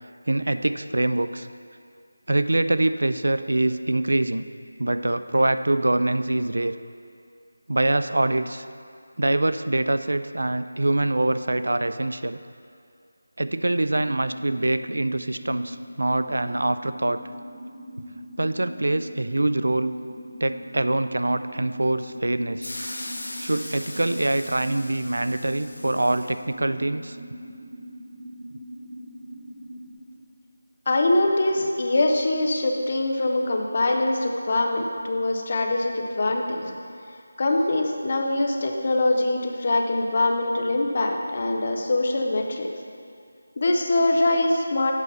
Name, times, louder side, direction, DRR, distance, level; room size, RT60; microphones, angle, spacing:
voice 1, 0.3-1.5 2.3-4.4 4.8-6.8 7.7-8.7 9.2-12.4 13.4-17.2 18.4-19.9 20.4-22.7 23.4-27.2, right 2 dB, 80° right, 11 dB, 0.3 m, -24 dB
sound 1, 13.9-29.9, equal, 5° right, 2.1 m, -41 dB
sound 2, 22.6-26.4, left 1 dB, 75° left, 1.1 m, -38 dB
voice 2, 30.9-36.7 37.4-42.7 43.6-44.9, left 2 dB, 25° left, 2 dB, 0.5 m, -23 dB
8.0 x 5.6 x 5.4 m, 2.4 s
figure-of-eight pair, 180°, 0 cm